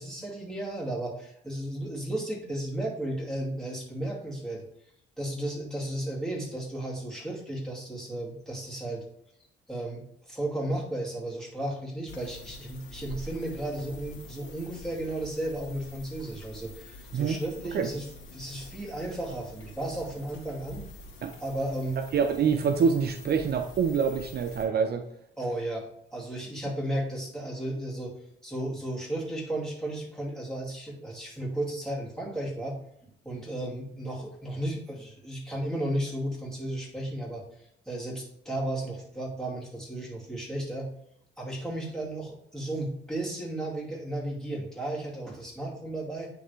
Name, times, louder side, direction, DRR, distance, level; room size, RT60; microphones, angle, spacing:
voice 1, 0.0-4.6 5.2-9.0 9.7-20.8 21.4-22.0 25.4-25.9 26.1-28.1 28.4-32.8 33.2-40.9 41.4-46.3, right 1 dB, 5° left, -4 dB, 2.4 m, -34 dB
sound 1, 12.1-24.6, left 1 dB, 75° left, 1.6 m, -46 dB
voice 2, 22.1-25.0, right 6 dB, 55° right, 7 dB, 0.6 m, -25 dB
9.3 x 3.3 x 3.3 m, 0.72 s
cardioid pair, 90°, 20 cm